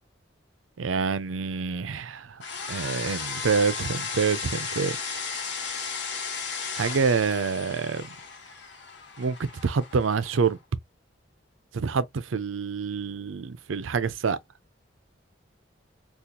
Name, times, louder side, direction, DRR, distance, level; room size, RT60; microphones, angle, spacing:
voice 1, 0.8-2.4 2.7-5.0 6.7-8.1 9.2-10.6 11.7-14.4, right 5 dB, 90° right, 0.5 m, -27 dB
sound 1, 2.4-10.5, left 5 dB, 65° left, 1.0 m, -35 dB
2.9 x 2.4 x 3.6 m
head